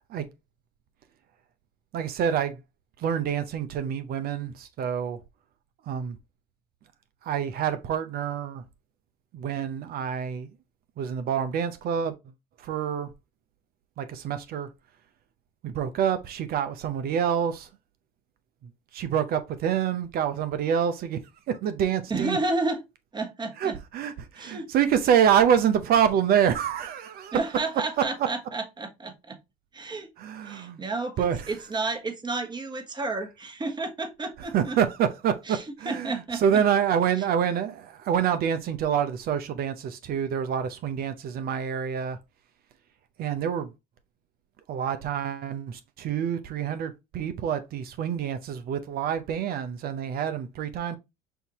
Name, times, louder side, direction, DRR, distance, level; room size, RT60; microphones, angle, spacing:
voice 1, 1.9-2.6 3.0-5.2 5.9-6.2 7.2-8.6 9.3-10.5 11.0-12.1 12.6-13.1 14.0-14.7 15.6-17.7 18.6-21.2 21.5-22.4 23.6-27.4 28.0-28.3 30.2-30.8 31.2-31.5 34.5-42.2 43.2-43.7 44.7-51.0, right 8 dB, 55° right, 0.7 m, -27 dB
voice 2, 22.1-22.8 23.1-23.7 24.4-24.7 27.3-29.4 29.7-30.1 30.4-34.7 35.5-36.4, right 3 dB, 25° right, 1.3 m, -31 dB
5.7 x 2.7 x 2.9 m
hypercardioid pair, 70°, 19 cm